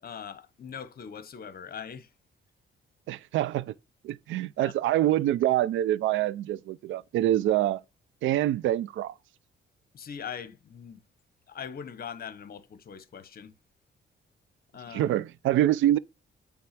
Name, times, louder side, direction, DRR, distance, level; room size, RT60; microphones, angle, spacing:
voice 1, 0.0-2.1 4.6-4.7 9.9-11.0 11.5-13.5 14.7-15.1, left 7 dB, 50° left, 1.1 m, -41 dB
voice 2, 3.1-3.7 4.0-7.8 8.2-9.1 14.9-16.0, right 13 dB, 80° right, 0.5 m, -25 dB
8.7 x 3.6 x 5.9 m
cardioid pair, 90°, 20 cm